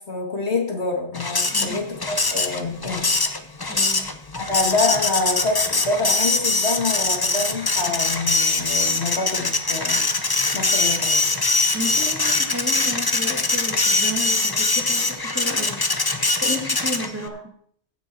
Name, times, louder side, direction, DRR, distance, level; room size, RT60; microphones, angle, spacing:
voice 1, 0.0-3.3 4.3-10.1 10.5-11.2, left 3 dB, 60° left, 1 dB, 2.2 m, -26 dB
Printer, 1.1-17.3, left 3 dB, 25° left, 0.7 m, -22 dB
voice 2, 1.5-1.9 3.7-4.1 11.7-15.8 16.4-17.5, equal, 10° right, 1 dB, 1.9 m, -32 dB
16.0 x 6.3 x 4.6 m, 0.62 s
omnidirectional pair, 1.3 m